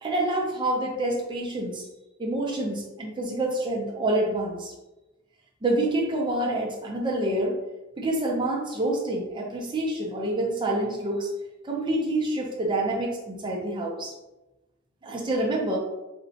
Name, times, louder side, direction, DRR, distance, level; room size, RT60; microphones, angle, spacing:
voice 1, 0.0-1.9 2.2-4.7 5.6-7.6 8.0-11.3 11.6-14.1 15.0-15.8, right 1 dB, 20° right, -1 dB, 0.4 m, -27 dB
3.8 x 2.1 x 2.7 m, 1.0 s
head